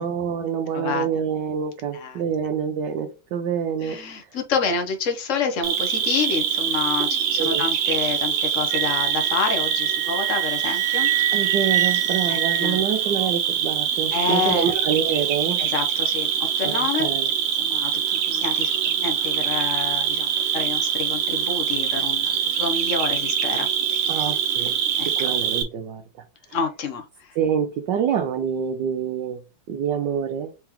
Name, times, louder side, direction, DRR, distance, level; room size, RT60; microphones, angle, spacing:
voice 1, 0.0-4.0 7.4-7.6 11.3-15.6 16.6-17.3 24.1-26.0 26.5-26.7 27.3-29.4 29.7-30.5, right 8 dB, 70° right, 1.1 m, -26 dB
voice 2, 0.7-1.1 1.9-2.2 3.8-11.1 12.3-12.8 14.1-14.7 15.6-17.1 17.6-24.2 25.0-25.3 26.5-27.3, left 5 dB, 75° left, 0.7 m, -28 dB
Cricket, 5.6-25.6, right 8 dB, 90° right, 1.8 m, -24 dB
Wind instrument woodwind instrument, 8.7-13.3, right 14 dB, 35° right, 1.6 m, -26 dB
4.6 x 3.6 x 2.9 m
omnidirectional pair, 2.4 m